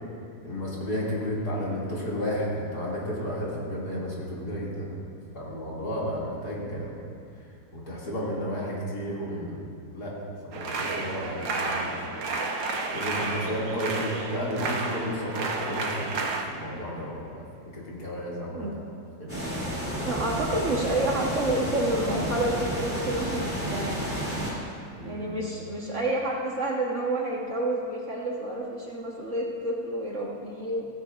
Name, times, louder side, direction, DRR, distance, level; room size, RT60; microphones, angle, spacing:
voice 1, 0.4-5.0 5.3-6.9 7.7-10.1 10.4-11.9 12.9-17.5 17.7-18.7 19.2-19.5 25.0-25.3, equal, 60° left, -6 dB, 3.0 m, -32 dB
sound 1, 10.5-16.4, right 3 dB, 80° right, 1.7 m, -31 dB
sound 2, 19.3-24.5, equal, 5° right, 2.9 m, -31 dB
voice 2, 20.0-24.1 25.0-30.9, right 1 dB, 45° right, -3 dB, 1.4 m, -29 dB
15.5 x 15.0 x 2.5 m, 2.4 s
omnidirectional pair, 1.9 m